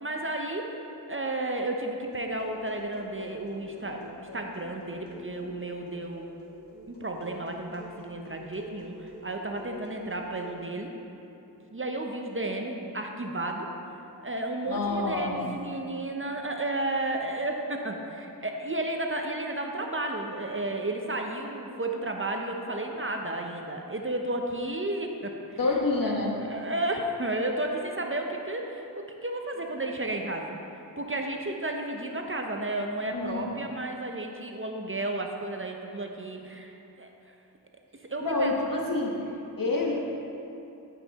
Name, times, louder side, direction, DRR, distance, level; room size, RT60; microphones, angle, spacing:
voice 1, 0.0-0.7 1.1-6.3 6.9-10.9 11.7-13.7 14.2-25.6 26.0-30.6 31.0-37.1 38.1-38.6, right 1 dB, 30° right, 2 dB, 0.7 m, -33 dB
sound 1, 2.0-10.5, equal, 80° left, 1.4 m, -47 dB
voice 2, 14.7-15.4 25.6-26.4 33.1-33.5 38.2-39.1 39.6-40.0, left 3 dB, 55° left, -2 dB, 1.4 m, -27 dB
9.3 x 5.7 x 4.1 m, 2.9 s
cardioid pair, 45°, 41 cm